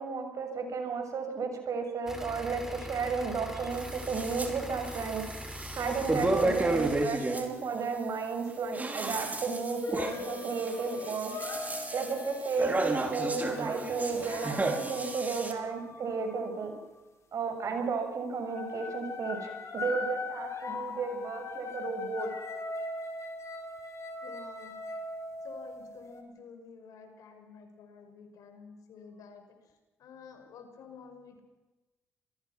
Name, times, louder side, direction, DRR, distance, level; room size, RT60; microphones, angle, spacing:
voice 1, 0.0-5.2 5.8-11.3 11.9-16.7 17.3-22.3, right 5 dB, 60° right, 5 dB, 6.9 m, -33 dB
sound 1, 2.1-7.1, left 1 dB, 5° right, 5.4 m, -42 dB
sound 2, 3.7-4.5 4.8-7.4 8.5-15.5, right 2 dB, 25° right, 5.4 m, -33 dB
sound 3, 9.8-16.8 17.6-17.9 18.3-26.2, left 3 dB, 50° left, 5.4 m, -41 dB
voice 2, 24.2-24.7 25.4-29.5 30.0-31.4, left 5 dB, 70° left, 6 dB, 5.9 m, -50 dB
27.5 x 22.0 x 6.1 m, 1.1 s
hypercardioid pair, 50°, 6 cm